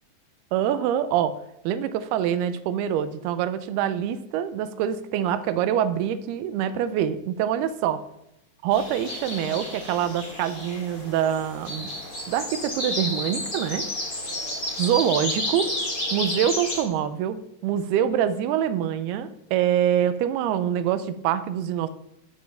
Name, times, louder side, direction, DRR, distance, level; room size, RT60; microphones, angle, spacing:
voice 1, 0.5-1.4 1.6-8.0 8.6-11.9 12.3-13.9 14.8-15.7 16.1-21.9, right 10 dB, 80° right, 12 dB, 2.5 m, -25 dB
sound 1, 8.7-16.8, left 1 dB, 20° left, 1.3 m, -31 dB
10.5 x 7.5 x 3.4 m, 0.81 s
omnidirectional pair, 4.7 m